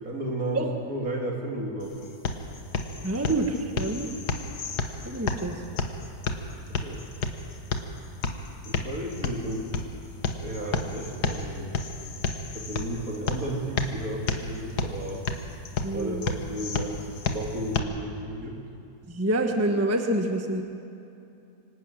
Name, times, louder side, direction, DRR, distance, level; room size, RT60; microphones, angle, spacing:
voice 1, 0.0-2.1 6.8-7.0 8.6-9.6 10.4-11.7 12.5-15.2 15.9-18.6, right 1 dB, 60° right, 0 dB, 3.2 m, -33 dB
sound 1, 1.8-17.8, left 4 dB, 80° left, 1.8 m, -32 dB
voice 2, 3.0-4.1 5.0-5.6 15.8-16.3 19.1-20.6, right 1 dB, 10° right, 4 dB, 1.1 m, -27 dB
24.5 x 12.0 x 9.0 m, 2.7 s
omnidirectional pair, 1.7 m